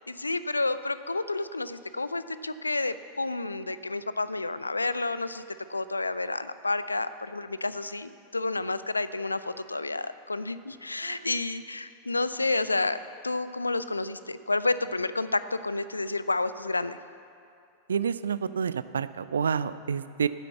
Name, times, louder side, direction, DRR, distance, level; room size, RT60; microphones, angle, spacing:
voice 1, 0.1-5.4 5.7-17.0, left 2 dB, 80° left, 14 dB, 0.4 m, -30 dB
voice 2, 17.9-20.3, right 7 dB, 70° right, 15 dB, 0.3 m, -29 dB
9.7 x 8.3 x 7.9 m, 2.4 s
figure-of-eight pair, 90°, 0 cm